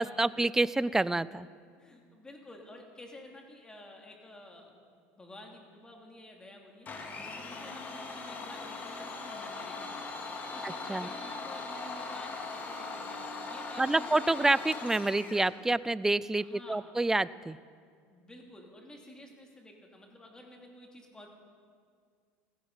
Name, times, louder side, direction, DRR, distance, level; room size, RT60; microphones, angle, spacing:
voice 1, 0.0-1.5 10.6-11.1 13.8-17.6, right 2 dB, 10° right, 18 dB, 0.4 m, -28 dB
voice 2, 1.8-6.9 7.2-10.0 10.5-14.3 16.4-16.9 18.1-21.3, left 1 dB, 15° left, 1 dB, 2.9 m, -51 dB
Domestic sounds home sounds, 6.9-15.5, left 3 dB, 30° left, 2.2 m, -40 dB
16.0 x 16.0 x 5.6 m, 2.1 s
supercardioid pair, 120°, 6 cm